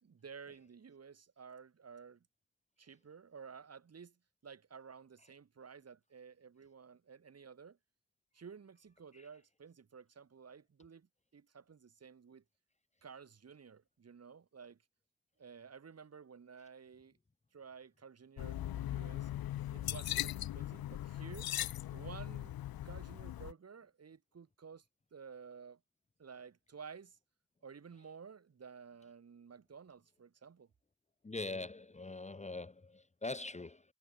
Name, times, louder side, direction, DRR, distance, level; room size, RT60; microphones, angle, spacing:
voice 1, 0.0-2.2 2.8-4.2 4.4-7.8 8.3-12.4 13.0-14.8 15.4-17.2 17.5-19.3 19.7-21.5 21.9-22.6 22.8-24.8 25.1-25.8 26.2-27.2 27.6-30.7, right 6 dB, 35° right, 3.2 m, -53 dB
sound 1, 18.4-23.5, left 13 dB, 55° left, 0.8 m, -39 dB
voice 2, 31.2-33.8, left 2 dB, 15° left, 1.6 m, -42 dB
cardioid pair, 125°, 43 cm